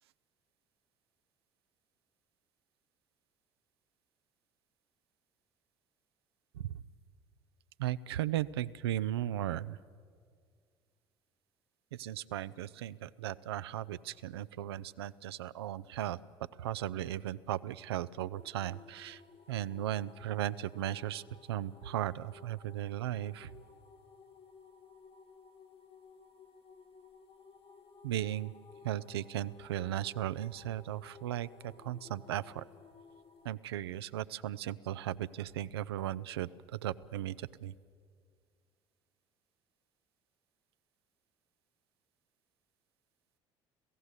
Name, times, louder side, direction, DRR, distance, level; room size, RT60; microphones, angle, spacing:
voice 1, 7.8-9.8 11.9-16.2 16.6-19.2 19.5-23.5 28.0-28.5 28.8-32.6 33.4-37.7, right 12 dB, 80° right, 16 dB, 0.5 m, -36 dB
sound 1, 18.3-33.6, left 5 dB, 45° left, 1.3 m, -57 dB
26.5 x 16.5 x 8.2 m, 2.1 s
hypercardioid pair, 60°, 13 cm